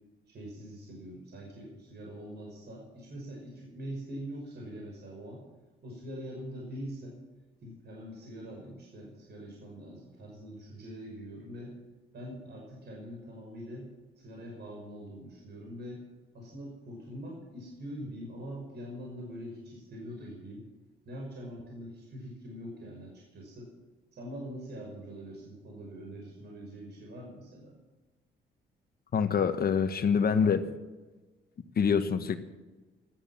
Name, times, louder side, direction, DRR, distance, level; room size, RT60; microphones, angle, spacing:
voice 1, 0.3-5.4 5.8-7.2 7.6-11.7 12.1-13.9 14.2-16.0 16.3-20.6 21.1-23.7 24.1-27.7, equal, 55° right, -1 dB, 5.8 m, -43 dB
voice 2, 29.1-30.7 31.8-32.4, left 6 dB, 50° left, 9 dB, 1.3 m, -25 dB
14.5 x 13.0 x 7.6 m, 1.2 s
cardioid pair, 90°, 20 cm